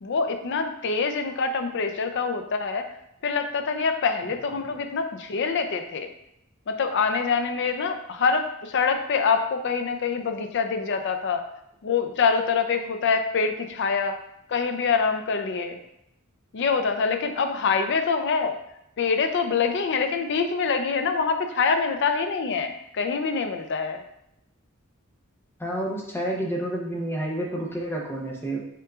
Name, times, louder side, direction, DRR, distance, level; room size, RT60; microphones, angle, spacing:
voice 1, 0.0-2.9 3.2-6.1 6.7-11.5 11.8-14.2 14.5-15.8 16.5-18.6 19.0-24.0, left 5 dB, 55° left, 6 dB, 0.5 m, -25 dB
voice 2, 25.6-28.6, right 1 dB, 10° left, -1 dB, 0.7 m, -29 dB
5.7 x 3.6 x 2.4 m, 0.80 s
head